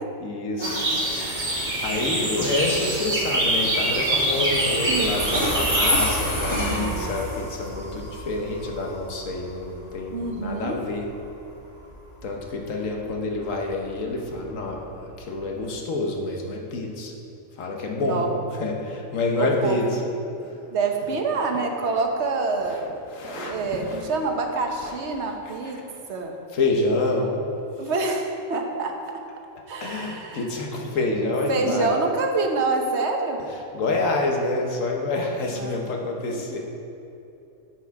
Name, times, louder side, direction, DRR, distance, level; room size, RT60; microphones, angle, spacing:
voice 1, 0.2-0.9 1.8-11.1 12.2-17.1 17.6-18.3 18.6-20.0 20.4-20.6 22.7-24.1 25.9-26.0 26.5-27.4 27.8-27.9 29.8-31.9 33.7-36.7, left 2 dB, 70° left, 1 dB, 1.4 m, -27 dB
sound 1, 0.6-5.9, right 1 dB, 35° right, 1.3 m, -25 dB
Train, 0.9-15.7, equal, 20° left, 1.2 m, -31 dB
voice 2, 1.1-1.8 4.9-5.4 6.5-7.2 10.1-10.8 17.9-18.3 19.4-19.9 20.7-22.8 23.3-25.8 26.1-26.4 27.8-28.9 29.7-30.4 31.5-33.4 35.5-35.8 36.3-36.5, right 3 dB, 55° right, 3 dB, 1.1 m, -27 dB
8.3 x 6.4 x 4.7 m, 2.8 s
omnidirectional pair, 1.4 m